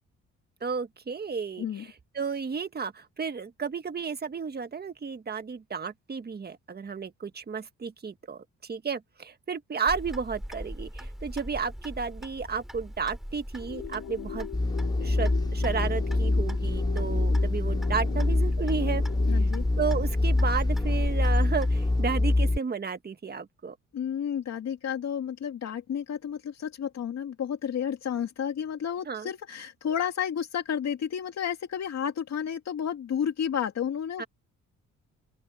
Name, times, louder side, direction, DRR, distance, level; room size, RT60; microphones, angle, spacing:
voice 1, 0.6-14.5 15.0-19.0 19.8-23.8 29.0-29.3 34.2-34.3, right 5 dB, 30° right, 1.7 m, -33 dB
Clock, 9.9-22.0, equal, ahead, 3.0 m, -40 dB
sound 1, 13.6-19.6, left 12 dB, 80° left, 3.9 m, -41 dB
sound 2, 14.5-22.6, left 2 dB, 15° left, 3.0 m, -25 dB
voice 2, 19.3-19.6 23.9-34.3, left 8 dB, 60° left, 2.3 m, -31 dB
open air
cardioid pair, 90°, 30 cm